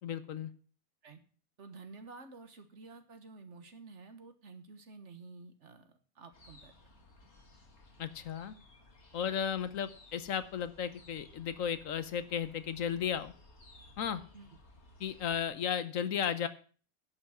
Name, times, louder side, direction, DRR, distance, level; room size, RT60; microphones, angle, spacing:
voice 1, 0.0-0.5 8.0-8.5 9.1-13.3 14.0-14.2 15.0-16.5, left 8 dB, 70° left, 13 dB, 1.2 m, -34 dB
voice 2, 1.6-6.7 9.2-9.3 14.3-14.6, right 4 dB, 55° right, 8 dB, 1.6 m, -51 dB
sound 1, 6.3-15.5, left 2 dB, 50° left, 2.3 m, -59 dB
11.0 x 6.0 x 7.7 m, 0.41 s
omnidirectional pair, 1.5 m